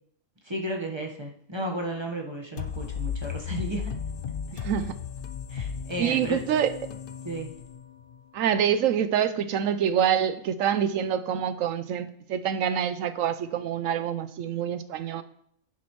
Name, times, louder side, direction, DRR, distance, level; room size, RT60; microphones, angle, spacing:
voice 1, 0.4-3.9 5.5-6.4 7.2-7.5, right 1 dB, 20° right, 1 dB, 1.2 m, -33 dB
sound 1, 2.6-8.2, left 7 dB, 55° left, 0.6 m, -35 dB
voice 2, 4.5-4.9 6.0-6.7 8.3-15.2, right 9 dB, 80° right, 12 dB, 1.0 m, -26 dB
10.5 x 8.4 x 3.1 m, 0.67 s
omnidirectional pair, 1.4 m